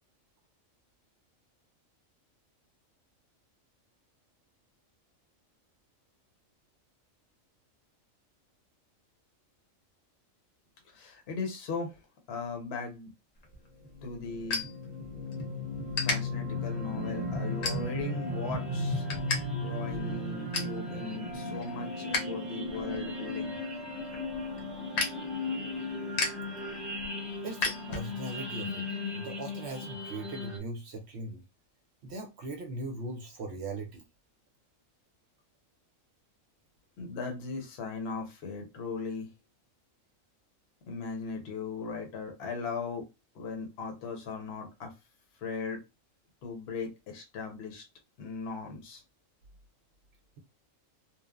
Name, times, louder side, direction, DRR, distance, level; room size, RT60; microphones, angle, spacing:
voice 1, 10.8-12.0 12.3-13.1 14.0-14.6 16.0-19.0 19.5-23.6 37.0-39.3 40.9-43.1 43.3-44.9 45.4-45.8 46.4-47.8 48.2-49.0, left 4 dB, 55° left, 0.9 m, -38 dB
sound 1, 13.4-15.4 15.9-16.2 16.7-17.0 17.6-18.2 18.6-19.4 19.7-19.8 20.1-20.8 21.2-22.3 22.6-28.4, left 3 dB, 75° left, 1.2 m, -35 dB
sound 2, 13.8-30.6, left 2 dB, ahead, 0.3 m, -36 dB
voice 2, 27.4-28.8 29.1-31.4 32.0-34.0, right 2 dB, 65° right, 0.7 m, -39 dB
3.0 x 2.1 x 2.2 m
omnidirectional pair, 1.4 m